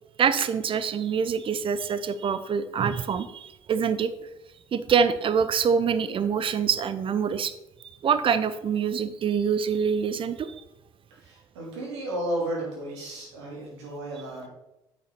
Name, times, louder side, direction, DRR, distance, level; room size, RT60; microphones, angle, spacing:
voice 1, 0.2-4.1 4.7-7.5 8.0-10.5, right 6 dB, 35° right, 13 dB, 0.6 m, -25 dB
voice 2, 11.1-14.5, right 1 dB, 80° right, -3 dB, 2.9 m, -33 dB
8.3 x 5.7 x 4.3 m, 0.92 s
hypercardioid pair, 60°, 14 cm